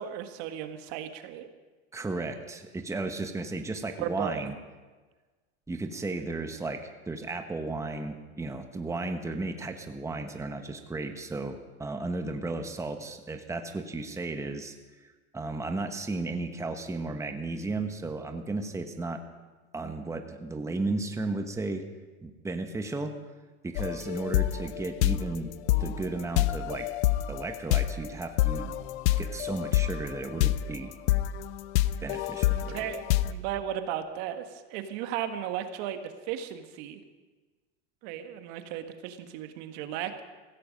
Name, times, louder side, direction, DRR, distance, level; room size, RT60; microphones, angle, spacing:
voice 1, 0.0-1.5 4.0-4.5 32.5-37.0 38.0-40.2, right 10 dB, 65° right, 8 dB, 1.6 m, -35 dB
voice 2, 1.9-4.5 5.7-14.7 15.3-19.2 19.7-21.8 22.2-23.1 23.6-25.5 25.8-26.9 27.3-28.7 29.2-30.9 32.0-32.9, right 2 dB, 10° right, 6 dB, 1.2 m, -34 dB
sound 1, 23.8-33.3, left 14 dB, 75° left, 0.7 m, -27 dB
16.5 x 15.5 x 5.2 m, 1.3 s
supercardioid pair, 115°, 35 cm